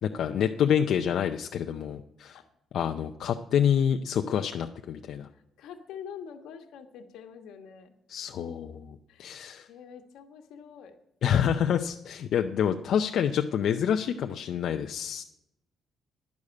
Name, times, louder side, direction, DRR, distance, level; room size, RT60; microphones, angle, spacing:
voice 1, 0.0-2.4 2.7-5.3 8.1-9.7 11.2-15.2, left 8 dB, 70° left, 5 dB, 0.5 m, -27 dB
voice 2, 5.3-8.0 9.1-9.4 9.7-11.0, left 7 dB, 90° left, 6 dB, 1.3 m, -45 dB
10.5 x 6.5 x 8.5 m, 0.83 s
cardioid pair, 90°, 0 cm